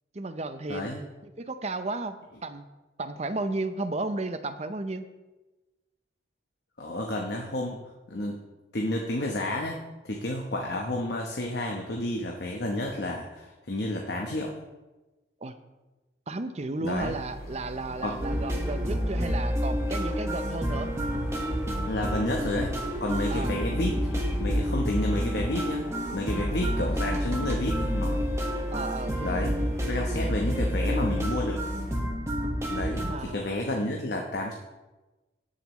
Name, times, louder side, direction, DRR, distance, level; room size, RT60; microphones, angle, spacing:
voice 1, 0.1-2.2 2.4-2.7 3.0-5.0 15.4-15.6 16.3-20.9 23.3-23.6 26.3-26.7 28.7-29.5 33.0-33.4, right 2 dB, 35° right, 10 dB, 0.6 m, -34 dB
voice 2, 0.7-1.0 6.8-8.4 8.7-14.6 16.8-17.2 18.0-18.4 21.9-25.9 26.1-28.3 29.2-29.6 29.9-31.6 32.7-34.5, left 1 dB, 65° left, 1 dB, 1.0 m, -31 dB
sound 1, 17.0-32.0, right 1 dB, 40° left, 2.8 m, -43 dB
sound 2, 18.2-33.1, equal, 15° right, 1.5 m, -29 dB
19.0 x 7.0 x 3.1 m, 1.1 s
head